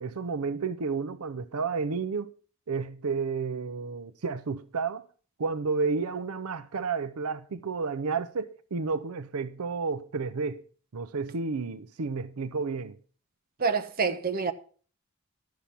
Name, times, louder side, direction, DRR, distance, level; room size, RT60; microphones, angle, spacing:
voice 1, 0.0-2.3 2.7-5.0 5.4-10.6 10.9-13.0, right 4 dB, 80° right, 0.6 m, -31 dB
voice 2, 13.6-14.5, right 5 dB, 40° right, 0.9 m, -27 dB
11.5 x 6.9 x 5.8 m
head